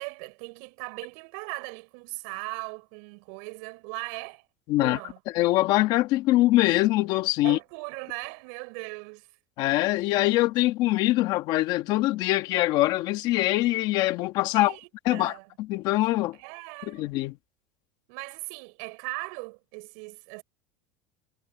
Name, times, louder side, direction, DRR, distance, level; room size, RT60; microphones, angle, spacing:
voice 1, 0.0-4.5 4.8-5.2 7.4-9.3 14.5-15.5 16.4-17.1 18.1-20.4, right 35 dB, 70° right, 6.6 m, -39 dB
voice 2, 4.7-5.0 5.3-7.6 9.6-14.7 15.0-16.4 16.9-17.3, left 17 dB, 55° left, 1.5 m, -23 dB
supercardioid pair, 145°, 9 cm